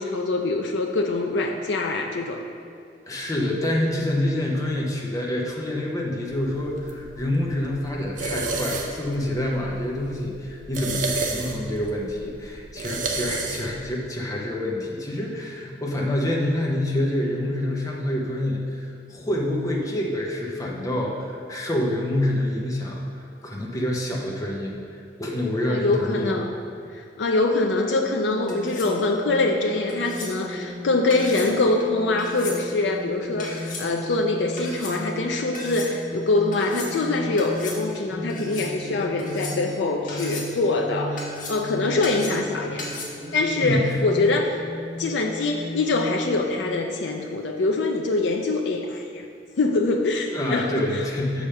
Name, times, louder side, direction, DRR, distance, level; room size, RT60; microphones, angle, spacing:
voice 1, 0.0-2.4 25.7-26.5 26.9-42.8 43.3-44.6 45.0-49.2 49.6-50.8, left 2 dB, 85° left, 1 dB, 0.5 m, -24 dB
voice 2, 3.1-23.0 23.4-24.8 25.2-26.4 43.6-44.0 50.3-51.5, left 1 dB, 20° left, -2 dB, 0.9 m, -27 dB
sound 1, 6.3-13.9, right 3 dB, 45° right, 0.7 m, -32 dB
sound 2, 27.6-46.8, left 1 dB, 70° right, 1.8 m, -36 dB
sound 3, 28.5-29.0 29.9-30.3 31.1-31.5 32.2-32.6 33.4-33.9 34.6-34.9 35.5-35.9 36.5-36.9 37.4-37.8 38.3-38.7 39.2-39.8 40.1-40.5 41.2-41.7 42.0-42.5 42.8-43.0, left 2 dB, 50° left, 1.4 m, -36 dB
7.1 x 5.0 x 5.7 m, 2.3 s
head